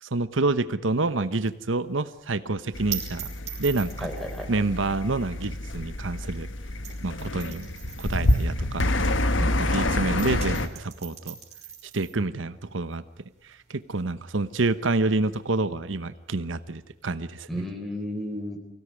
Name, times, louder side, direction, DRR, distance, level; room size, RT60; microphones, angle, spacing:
voice 1, 0.0-3.3 3.6-4.1 4.5-6.5 7.0-7.7 8.0-8.9 9.6-11.4 11.8-13.0 13.4-17.6, right 3 dB, 85° right, 13 dB, 1.0 m, -28 dB
sound 1, 0.9-9.8 10.0-17.3, right 11 dB, 35° right, 4.9 m, -42 dB
sound 2, 2.7-10.7, left 1 dB, 85° left, 1.5 m, -28 dB
voice 2, 4.0-4.5 9.4-9.8 17.5-18.6, equal, ahead, 4 dB, 3.8 m, -33 dB
24.5 x 17.0 x 9.8 m, 0.87 s
head